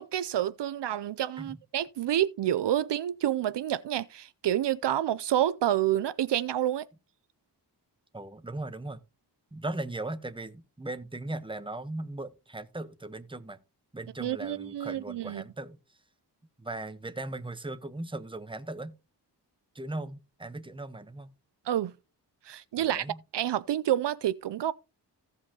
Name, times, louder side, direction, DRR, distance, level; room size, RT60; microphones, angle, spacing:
voice 1, 0.0-6.9 14.2-15.4 21.7-21.9 22.4-23.1 23.3-24.7, right 11 dB, 75° right, 0.5 m, -28 dB
voice 2, 8.1-9.0 9.5-13.6 13.9-16.0 16.6-19.0 19.7-21.3 22.8-23.2, right 2 dB, 10° right, 0.9 m, -38 dB
16.5 x 5.5 x 2.8 m
wide cardioid pair, 65°, 42 cm